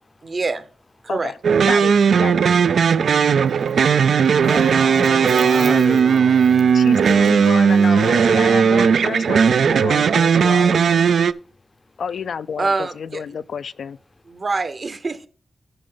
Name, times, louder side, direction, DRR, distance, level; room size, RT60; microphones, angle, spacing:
voice 1, 0.2-0.6 1.0-1.3 12.6-13.2 14.3-15.3, right 3 dB, 45° right, 0.8 m, -25 dB
sound 1, 1.4-11.3, right 6 dB, 85° right, 0.3 m, -16 dB
voice 2, 3.5-4.1 4.4-6.7 7.0-7.6, left 2 dB, 25° left, 0.5 m, -32 dB
voice 3, 6.7-10.9 12.0-14.0, left 6 dB, 80° left, 0.4 m, -29 dB
12.0 x 5.2 x 3.9 m
wide cardioid pair, 105°, 0 cm